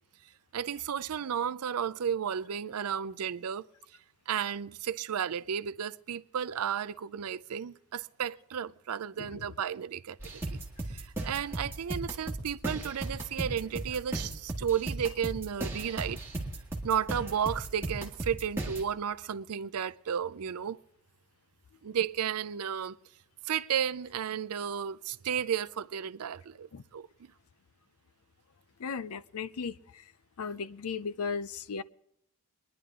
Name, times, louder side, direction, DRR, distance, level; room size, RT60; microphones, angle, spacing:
voice 1, 0.5-3.7 4.3-10.6 10.9-16.2 16.8-20.8 21.8-23.0 23.5-27.1, right 8 dB, 90° right, 0.5 m, -33 dB
sound 1, 10.2-18.8, right 2 dB, 10° right, 1.9 m, -37 dB
voice 2, 28.8-30.0 30.4-31.8, left 5 dB, 80° left, 0.5 m, -36 dB
22.5 x 10.5 x 3.6 m
head